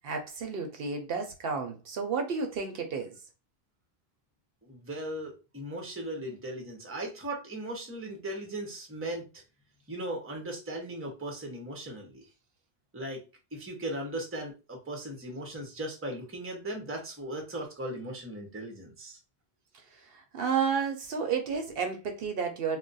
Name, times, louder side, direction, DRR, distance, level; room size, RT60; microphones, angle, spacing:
voice 1, 0.0-3.1 20.1-22.8, right 5 dB, 70° right, 0.8 m, -31 dB
voice 2, 4.6-9.3 9.9-12.2 12.9-13.2 13.5-19.2, right 1 dB, 15° right, 0.6 m, -38 dB
2.3 x 2.1 x 3.9 m
omnidirectional pair, 1.1 m